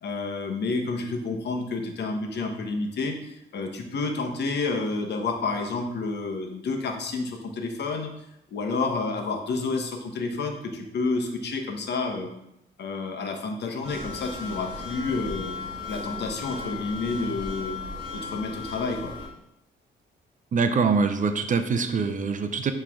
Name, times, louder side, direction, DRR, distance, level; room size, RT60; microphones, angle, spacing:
voice 1, 0.0-8.1 8.5-12.3 12.8-15.5 15.9-17.8 18.1-19.1, left 3 dB, 60° left, 4 dB, 1.0 m, -29 dB
sound 1, 13.8-19.3, left 3 dB, 20° right, 1.8 m, -36 dB
voice 2, 20.5-22.7, right 5 dB, 40° right, 8 dB, 0.6 m, -24 dB
8.2 x 3.3 x 3.6 m, 0.83 s
cardioid pair, 90°, 20 cm